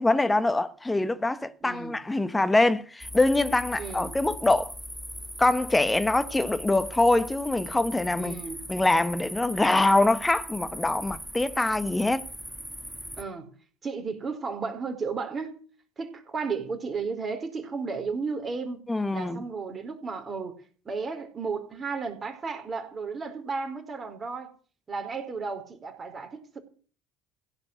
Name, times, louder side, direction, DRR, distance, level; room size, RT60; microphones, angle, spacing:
voice 1, 0.0-4.7 5.4-8.4 8.7-12.3 18.9-19.4, left 2 dB, 15° left, 1.2 m, -24 dB
voice 2, 1.6-1.9 3.8-4.1 8.2-8.7 13.2-13.5 13.8-15.6 16.0-18.8 19.1-20.5 20.8-24.5 24.9-26.6, right 4 dB, 30° right, 4.6 m, -34 dB
sound 1, 3.0-13.2, equal, 5° right, 2.2 m, -39 dB
16.5 x 9.0 x 8.0 m
hypercardioid pair, 65°, 0 cm